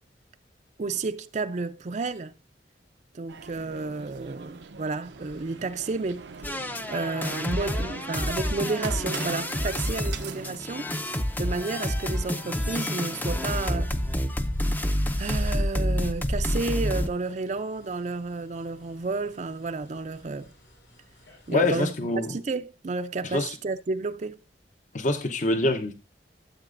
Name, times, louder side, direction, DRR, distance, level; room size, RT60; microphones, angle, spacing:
voice 1, 0.8-2.3 3.1-6.3 6.9-10.9 11.4-13.9 15.2-20.5 21.5-21.9 22.3-24.4, right 3 dB, 40° right, 0.4 m, -31 dB
sound 1, 3.3-10.6, right 4 dB, 85° right, 0.6 m, -42 dB
sound 2, 5.2-21.7, left 1 dB, 85° left, 4.6 m, -54 dB
sound 3, 6.4-17.1, left 1 dB, 10° left, 0.5 m, -28 dB
voice 2, 21.5-22.3 23.3-23.5 24.9-26.0, left 2 dB, 45° left, 0.8 m, -25 dB
13.0 x 7.7 x 2.5 m
head